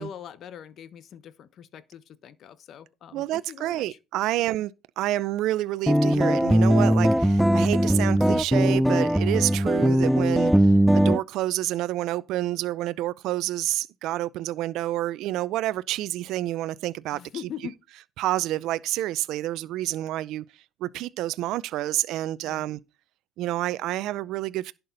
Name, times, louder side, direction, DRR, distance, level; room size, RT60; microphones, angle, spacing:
voice 1, 0.0-4.0 4.3-4.5 17.1-17.7 22.4-22.7, left 9 dB, 50° left, 1.2 m, -42 dB
voice 2, 3.1-17.5 18.2-20.4 20.8-22.8 23.4-24.7, right 15 dB, 65° right, 0.5 m, -29 dB
sound 1, 5.9-11.2, equal, ahead, 0.5 m, -20 dB
11.0 x 6.9 x 4.0 m
supercardioid pair, 100°, 0 cm